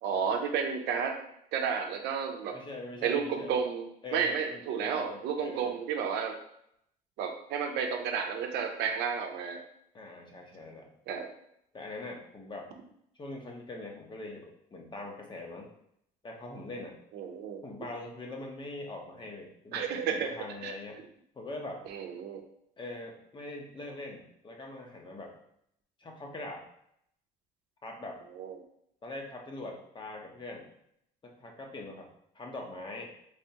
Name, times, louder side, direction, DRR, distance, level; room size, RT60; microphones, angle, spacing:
voice 1, 0.0-1.2 1.5-2.6 3.0-3.9 4.1-6.4 7.2-9.6 11.1-11.3 17.1-17.6 19.7-20.3 20.6-20.7 21.9-22.4 28.4-28.6, right 6 dB, 80° right, 3 dB, 0.6 m, -31 dB
voice 2, 2.5-3.6 4.0-5.7 9.9-10.9 11.7-12.7 13.1-15.7 16.2-17.0 17.6-21.0 21.3-21.8 22.8-25.4 26.0-26.6 27.8-28.2 29.0-30.7 31.2-32.1 32.3-33.1, left 2 dB, 30° left, 1 dB, 0.8 m, -42 dB
3.5 x 3.4 x 2.8 m, 0.73 s
cardioid pair, 110°, 17 cm